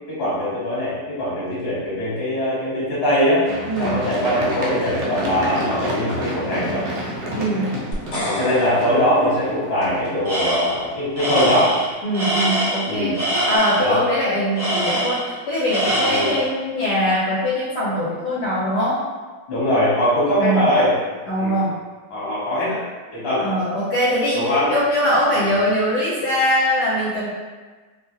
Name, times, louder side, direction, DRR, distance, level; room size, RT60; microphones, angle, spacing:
voice 1, 0.1-3.4 3.8-6.8 8.2-11.7 12.9-13.1 13.8-14.0 16.0-16.3 19.5-20.9 21.4-21.6 22.1-22.8 23.1-23.5 24.3-24.7, equal, 40° left, -10 dB, 1.3 m, -21 dB
Run, 3.4-11.3 11.8-11.9, equal, 70° right, 0.9 m, -30 dB
voice 2, 7.3-7.7 12.0-13.2 13.5-19.0 20.4-20.7 21.3-21.7 23.4-24.4 24.7-27.3, equal, 75° left, -7 dB, 1.1 m, -21 dB
sound 1, 7.9-10.2, left 1 dB, 60° left, 0.8 m, -30 dB
Tools, 10.3-10.8 11.2-13.9 14.6-15.4 15.7-16.5, right 1 dB, 40° right, 1.0 m, -23 dB
2.9 x 2.4 x 2.5 m, 1.3 s
omnidirectional pair, 1.9 m